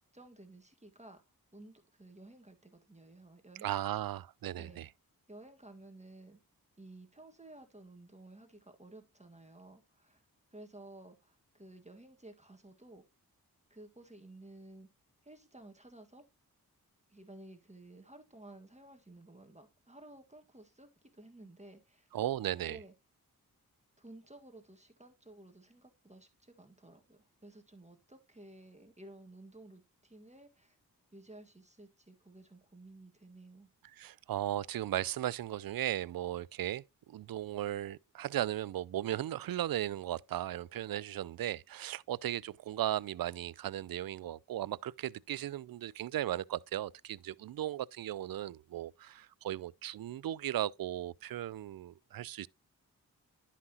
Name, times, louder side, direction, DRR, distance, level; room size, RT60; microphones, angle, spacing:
voice 1, 0.1-1.2 1.5-3.7 4.6-4.8 5.3-6.4 6.8-10.2 10.5-13.0 13.7-14.9 15.2-16.2 17.1-22.1 22.5-22.9 24.0-30.7 31.1-33.7, right 2 dB, 20° right, 1.7 m, -54 dB
voice 2, 3.6-4.9 22.1-22.8 33.9-52.5, right 12 dB, 70° right, 0.5 m, -36 dB
11.0 x 5.8 x 2.8 m
cardioid pair, 45°, 37 cm